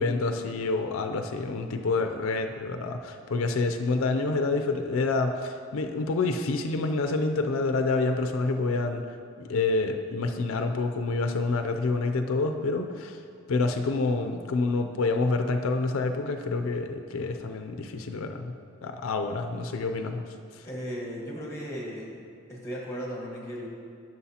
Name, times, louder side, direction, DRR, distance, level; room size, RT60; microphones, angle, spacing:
voice 1, 0.0-9.1 9.4-13.2 13.5-18.5 18.8-20.2 20.5-20.7, left 3 dB, 85° left, 6 dB, 0.4 m, -27 dB
voice 2, 20.6-22.2 22.5-23.7, equal, 15° left, -2 dB, 1.3 m, -36 dB
11.0 x 6.2 x 2.8 m, 2.4 s
head